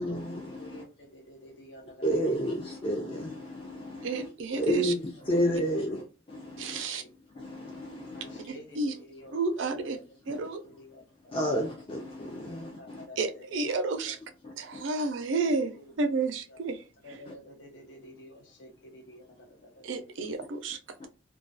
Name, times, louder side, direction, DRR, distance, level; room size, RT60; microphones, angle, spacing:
voice 1, 0.0-0.8 2.0-4.3 4.5-6.8 7.3-8.4 10.3-10.4 11.3-13.0 14.4-14.8 17.3-17.4 21.0-21.1, equal, 30° left, 0.4 m, -31 dB
voice 2, 0.6-2.6 4.5-5.0 5.7-5.8 6.9-7.1 8.1-10.0 10.6-11.5 12.4-13.7 14.0-14.1 15.6-15.8 17.0-20.0, left 1 dB, 70° left, 0.7 m, -50 dB
voice 3, 4.0-4.9 6.6-7.0 8.5-9.0 9.3-10.0 10.3-10.6 13.2-14.2 14.6-17.2 19.8-20.8, right 3 dB, 80° right, 0.4 m, -31 dB
2.2 x 2.2 x 2.5 m
head